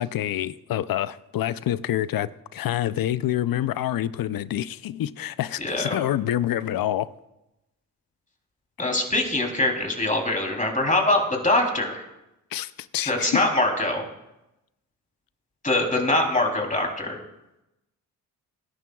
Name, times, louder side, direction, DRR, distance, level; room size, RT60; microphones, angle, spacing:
voice 1, 0.0-7.1 12.5-13.5, left 12 dB, 60° left, 0.6 m, -27 dB
voice 2, 5.6-6.0 8.8-12.0 13.1-14.0 15.6-17.2, left 2 dB, 20° left, 3.4 m, -23 dB
21.0 x 11.0 x 2.4 m
supercardioid pair, 55°, 39 cm